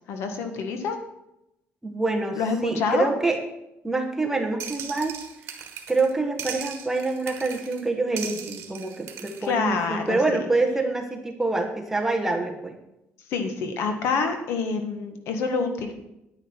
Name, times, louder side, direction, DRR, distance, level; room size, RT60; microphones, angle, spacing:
voice 1, 0.1-1.0 2.3-3.1 9.4-10.4 13.3-15.9, left 5 dB, 70° left, 6 dB, 1.5 m, -27 dB
voice 2, 1.8-3.4 3.8-5.2 5.9-12.7, right 3 dB, 10° right, 2 dB, 1.2 m, -26 dB
sound 1, 4.6-6.1 6.4-7.8 8.2-9.5, right 8 dB, 70° right, 1.5 m, -38 dB
9.7 x 9.6 x 4.5 m, 0.86 s
cardioid pair, 160°, 5 cm